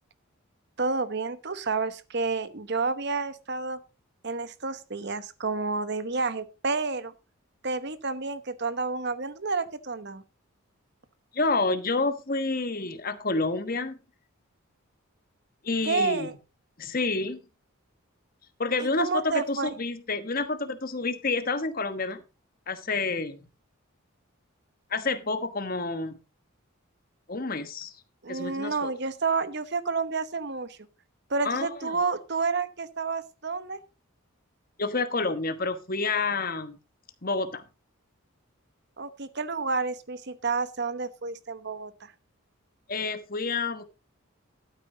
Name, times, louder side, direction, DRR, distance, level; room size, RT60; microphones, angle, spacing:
voice 1, 0.8-3.8 4.2-7.1 7.6-10.2 15.8-16.3 18.8-19.7 28.2-30.8 31.3-33.8 39.0-42.1, right 4 dB, 50° right, 14 dB, 0.9 m, -30 dB
voice 2, 11.3-14.0 15.6-16.3 16.8-17.4 18.6-22.2 22.7-23.5 24.9-26.2 27.3-27.9 28.3-28.9 31.4-32.0 34.8-36.8 37.2-37.6 42.9-43.8, left 3 dB, 40° left, 9 dB, 1.3 m, -29 dB
12.5 x 9.1 x 3.8 m, 0.29 s
head